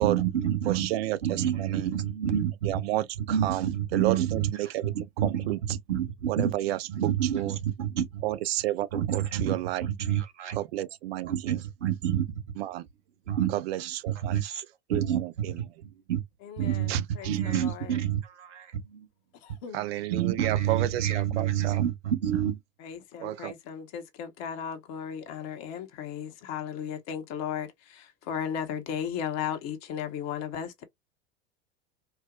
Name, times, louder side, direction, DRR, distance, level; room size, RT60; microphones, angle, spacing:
voice 1, 0.0-0.9 1.2-2.8 3.2-8.2 8.9-10.6 11.2-12.3 13.3-14.6 14.9-15.2 15.6-16.2 16.6-16.9 17.2-19.1 20.1-22.6, right 10 dB, 80° right, 1.1 m, -29 dB
voice 2, 0.7-1.9 2.6-3.1 3.4-4.9 5.2-5.6 6.3-7.6 8.2-9.8 10.6-11.6 12.6-12.9 13.5-14.5 14.9-15.5 16.9-17.4 19.7-21.8 23.2-23.5, right 15 dB, 60° right, 0.5 m, -31 dB
voice 3, 16.4-17.9 19.4-19.9 22.8-30.8, left 8 dB, 45° left, 1.0 m, -36 dB
4.5 x 2.1 x 2.3 m
hypercardioid pair, 90°, 35 cm